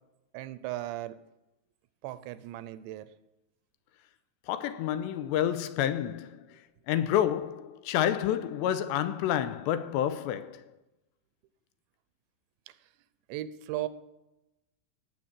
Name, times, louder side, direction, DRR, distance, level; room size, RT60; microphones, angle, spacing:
voice 1, 0.3-1.2 2.0-3.1 12.7-12.8 13.3-13.9, right 14 dB, 80° right, 2.8 m, -36 dB
voice 2, 4.5-6.6 6.9-10.7, left 10 dB, 85° left, 2.8 m, -29 dB
17.0 x 7.7 x 7.5 m
omnidirectional pair, 5.2 m